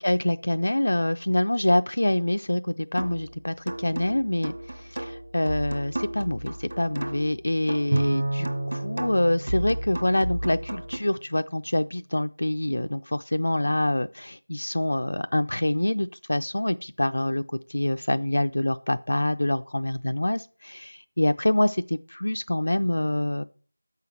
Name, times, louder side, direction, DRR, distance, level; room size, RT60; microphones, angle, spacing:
voice 1, 0.0-2.6 2.9-3.5 3.8-4.5 5.3-8.5 8.8-13.0 13.3-17.4 17.7-20.4 21.2-21.7 22.2-23.4, left 1 dB, 60° left, 9 dB, 0.4 m, -25 dB
sound 1, 3.0-3.3 3.7-7.4 7.7-11.0, right 1 dB, 60° right, 1.3 m, -34 dB
Bowed string instrument, 7.9-10.5, right 1 dB, 40° right, 0.7 m, -29 dB
7.3 x 5.7 x 5.9 m, 0.39 s
figure-of-eight pair, 180°, 0 cm